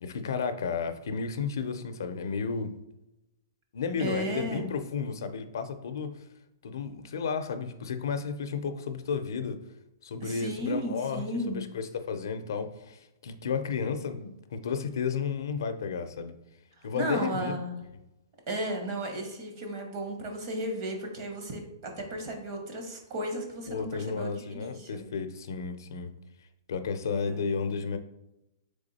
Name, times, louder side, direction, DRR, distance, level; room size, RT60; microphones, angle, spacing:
voice 1, 0.0-2.7 3.7-6.1 6.6-9.6 10.0-16.3 16.8-17.5 23.7-26.1 26.7-28.0, left 5 dB, 65° left, 9 dB, 0.5 m, -32 dB
voice 2, 4.0-4.7 10.2-11.6 16.9-17.8 18.5-25.0 27.2-27.4, right 1 dB, 35° right, 3 dB, 0.9 m, -34 dB
3.5 x 3.5 x 4.0 m, 0.92 s
hypercardioid pair, 170°, 2 cm